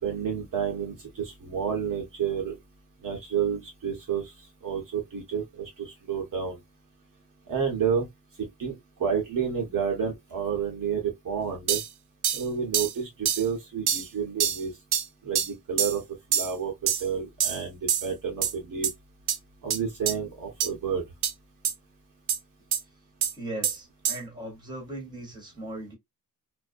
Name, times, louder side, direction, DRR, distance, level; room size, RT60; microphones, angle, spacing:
voice 1, 0.0-2.6 3.0-4.3 4.6-6.6 7.5-8.1 8.4-11.8 12.3-14.7 15.2-16.0 16.3-18.9 19.6-21.1, right 7 dB, 55° right, 0.9 m, -30 dB
sound 1, 11.7-11.9 12.2-12.4 12.7-12.9 13.2-13.4 13.9-14.1 14.4-14.6 14.9-15.0 15.3-15.5 15.8-16.0 16.3-16.5 16.9-17.1 17.4-17.6 17.9-18.1 18.4-18.5 18.8-18.9 19.3-19.4 19.7-19.8 20.1-20.2 20.6-20.7 21.2-21.3 21.6-21.7 22.3-22.4 22.7-22.8 23.2-23.3 23.6-23.8 24.0-24.2, right 9 dB, 80° right, 0.5 m, -25 dB
voice 2, 23.3-25.9, right 1 dB, 10° right, 1.1 m, -38 dB
2.4 x 2.1 x 2.5 m
wide cardioid pair, 125°, 38 cm